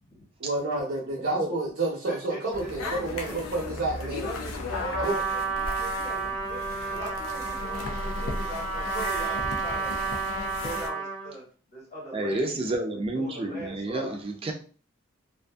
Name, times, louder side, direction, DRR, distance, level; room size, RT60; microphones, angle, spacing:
voice 1, 0.4-4.3 5.0-5.1, right 2 dB, 65° right, -3 dB, 0.7 m, -29 dB
voice 2, 2.0-3.3 4.0-6.6 6.9-9.9 10.5-11.4 11.7-12.8 13.1-14.2, right 1 dB, 45° left, -6 dB, 1.3 m, -40 dB
sound 1, 2.5-10.9, left 2 dB, 85° left, 0.5 m, -36 dB
Trumpet, 4.7-11.3, right 4 dB, 60° left, 0.9 m, -31 dB
voice 3, 12.1-14.5, right 2 dB, 25° right, 3 dB, 0.4 m, -30 dB
2.5 x 2.5 x 2.3 m, 0.40 s
head